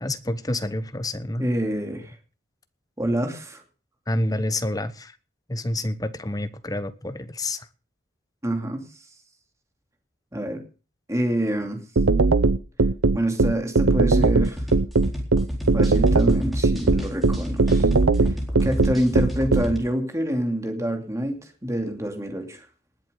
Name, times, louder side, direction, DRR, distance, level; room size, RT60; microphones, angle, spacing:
voice 1, 0.0-1.4 4.1-5.1 5.5-7.7, left 1 dB, 20° left, 1.0 m, -28 dB
voice 2, 1.4-2.1 3.0-3.6 8.4-8.8 10.3-10.6 11.1-11.8 13.1-14.6 15.7-17.9 18.6-21.4 21.6-22.7, right 1 dB, 15° right, 2.7 m, -26 dB
sound 1, 12.0-19.6, right 3 dB, 90° right, 0.8 m, -18 dB
sound 2, 14.2-19.8, equal, ahead, 4.0 m, -31 dB
19.5 x 7.9 x 6.9 m
head